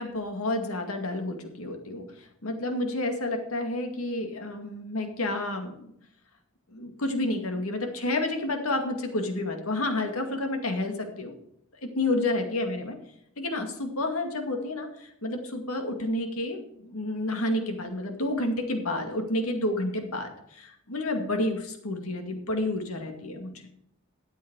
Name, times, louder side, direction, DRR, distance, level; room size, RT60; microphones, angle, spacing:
voice 1, 0.0-5.9 6.7-11.3 12.0-13.0 13.4-23.5, left 2 dB, 90° left, 5 dB, 2.2 m, -30 dB
12.5 x 8.3 x 4.7 m, 0.73 s
head